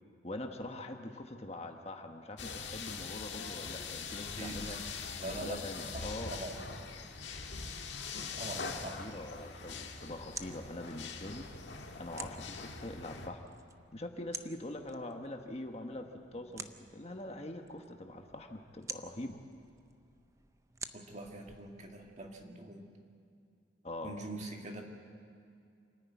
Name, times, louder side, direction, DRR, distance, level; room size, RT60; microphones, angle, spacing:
voice 1, 0.2-4.8 5.2-6.4 8.5-11.5 12.0-13.4 13.9-19.4 23.8-24.1, left 1 dB, 35° left, 5 dB, 1.2 m, -43 dB
sound 1, 2.4-13.3, left 4 dB, 75° left, 1.6 m, -42 dB
voice 2, 4.4-4.8 5.2-6.6 8.4-9.0 20.9-22.9 24.0-24.8, right 2 dB, 40° right, 2 dB, 2.1 m, -43 dB
sound 2, 9.7-22.4, right 4 dB, 15° right, 0.6 m, -51 dB
28.0 x 10.0 x 9.4 m, 2.4 s
head